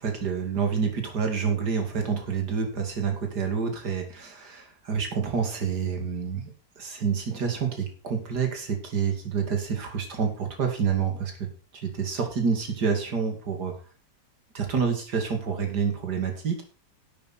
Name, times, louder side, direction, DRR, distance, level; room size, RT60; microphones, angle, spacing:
voice 1, 0.0-11.3 11.7-13.7 14.5-16.6, right 6 dB, 70° right, 4 dB, 3.0 m, -28 dB
12.0 x 8.6 x 4.4 m, 0.36 s
omnidirectional pair, 1.8 m